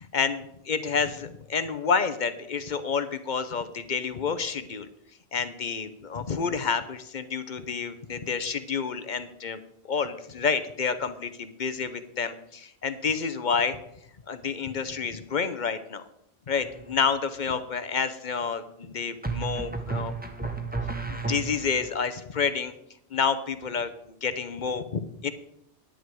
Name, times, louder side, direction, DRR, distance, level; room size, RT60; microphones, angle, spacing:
voice 1, 0.1-4.9 5.3-9.6 9.9-13.8 14.3-16.0 16.5-20.1 21.1-22.7 23.1-23.9 24.2-25.3, left 5 dB, 50° left, 11 dB, 0.9 m, -29 dB
sound 1, 16.6-17.1 19.2-21.9, right 4 dB, 10° right, 1.0 m, -33 dB
10.5 x 10.0 x 4.7 m, 0.76 s
omnidirectional pair, 1.1 m